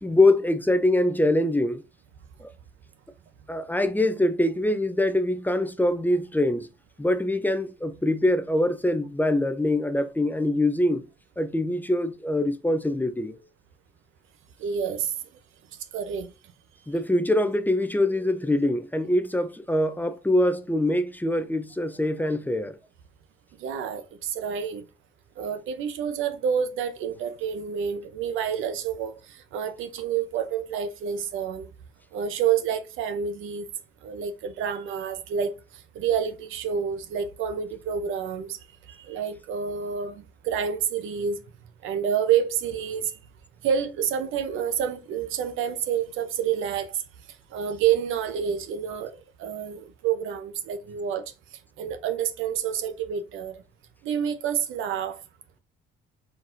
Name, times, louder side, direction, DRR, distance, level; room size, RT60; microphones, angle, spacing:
voice 1, 0.0-1.8 2.4-2.5 3.5-6.7 7.0-11.0 11.4-13.4 16.9-22.8, left 1 dB, 10° left, 0.5 m, -24 dB
voice 2, 14.6-15.1 15.9-16.3 23.6-24.8 25.4-31.7 32.1-33.7 34.0-38.6 38.9-41.4 41.8-43.2 43.6-47.0 47.5-51.3 51.8-53.6 54.0-55.2, right 8 dB, 90° right, 0.7 m, -28 dB
4.6 x 3.9 x 2.6 m
cardioid pair, 90°, 20 cm